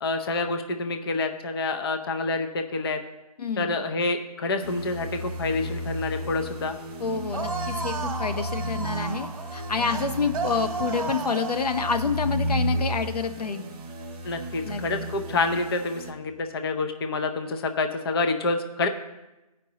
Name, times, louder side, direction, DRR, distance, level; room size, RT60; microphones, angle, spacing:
voice 1, 0.0-3.0 3.6-6.8 14.2-18.9, left 3 dB, 40° left, 6 dB, 0.6 m, -27 dB
voice 2, 3.4-3.7 7.0-13.7 14.6-14.8, left 5 dB, 80° left, 8 dB, 0.7 m, -28 dB
sound 1, 4.6-16.1, right 1 dB, 15° right, 0.4 m, -33 dB
sound 2, 7.3-12.2, right 4 dB, 60° right, 0.9 m, -34 dB
15.0 x 5.2 x 2.8 m, 1.0 s
figure-of-eight pair, 155°, 20 cm